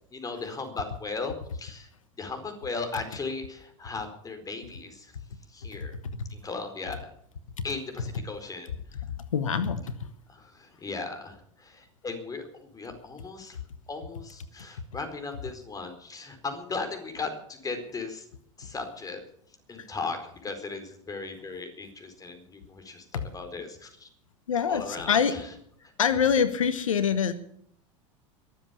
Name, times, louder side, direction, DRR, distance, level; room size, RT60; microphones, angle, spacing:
voice 1, 0.1-1.9 2.2-5.1 5.5-6.0 6.3-7.1 7.6-8.7 10.3-13.6 13.9-18.3 18.6-19.2 19.7-24.1 24.7-25.5 25.8-25.9, left 4 dB, 20° left, 7 dB, 4.5 m, -37 dB
voice 2, 9.3-9.9 19.8-19.9 23.1-23.2 24.5-25.3 26.0-27.3, left 7 dB, 90° left, 13 dB, 1.1 m, -25 dB
23.0 x 7.9 x 7.1 m, 0.67 s
hypercardioid pair, 90°, 17 cm